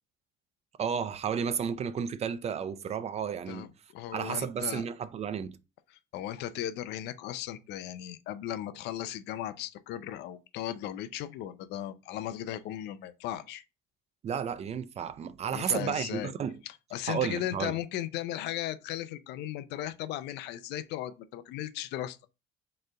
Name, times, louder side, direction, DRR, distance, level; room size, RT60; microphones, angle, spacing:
voice 1, 0.8-3.7 4.1-5.6 14.2-16.6 17.1-17.7, right 7 dB, 40° right, 0.4 m, -32 dB
voice 2, 3.5-4.9 5.9-13.6 15.5-16.3 16.7-22.2, left 12 dB, 85° left, 0.5 m, -37 dB
4.3 x 3.2 x 3.8 m
cardioid pair, 110°, 17 cm